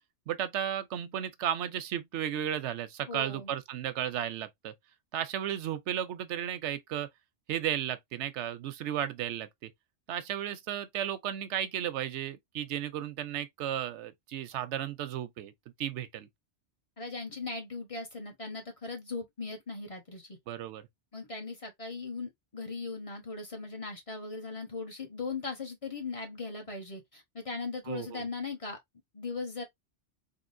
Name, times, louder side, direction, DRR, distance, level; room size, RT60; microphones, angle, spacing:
voice 1, 0.3-4.7 5.1-7.1 7.5-9.7 10.1-15.5 15.8-16.3 20.5-20.9 27.9-28.2, right 10 dB, 85° right, 0.9 m, -34 dB
voice 2, 3.1-3.5 17.0-20.4 21.1-28.8 29.1-29.6, left 3 dB, 35° left, 0.9 m, -39 dB
3.6 x 2.7 x 2.5 m
omnidirectional pair, 1.2 m